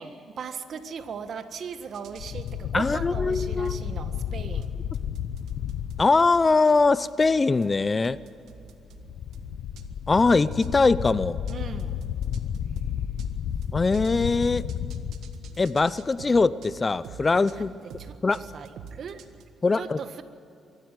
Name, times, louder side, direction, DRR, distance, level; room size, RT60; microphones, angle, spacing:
voice 1, 0.0-4.7 11.5-12.0 17.3-17.6 18.0-19.2 19.7-20.2, right 6 dB, 60° right, 9 dB, 1.5 m, -38 dB
sound 1, 1.9-19.4, right 7 dB, 80° right, 1.6 m, -48 dB
sound 2, 2.2-6.1 8.9-16.2, left 9 dB, 75° left, 0.8 m, -32 dB
voice 2, 2.7-3.8 6.0-8.2 10.1-11.4 13.7-14.7 15.6-17.7 18.2-18.4 19.6-20.0, left 3 dB, 30° left, 17 dB, 0.6 m, -22 dB
23.5 x 14.5 x 9.2 m, 2.7 s
cardioid pair, 90°, 0 cm